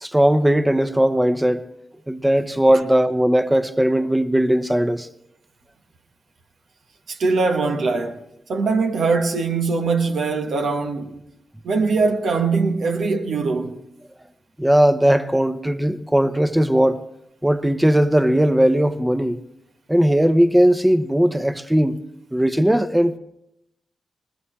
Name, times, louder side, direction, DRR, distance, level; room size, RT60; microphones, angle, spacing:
voice 1, 0.0-1.6 2.1-5.1 14.6-17.0 17.4-19.4 19.9-22.0 22.3-23.2, right 1 dB, 10° right, 0.9 m, -18 dB
voice 2, 7.1-8.2 8.5-11.1 11.6-13.8, right 4 dB, 80° right, 1.3 m, -21 dB
20.0 x 20.0 x 3.2 m
supercardioid pair, 40°, 0 cm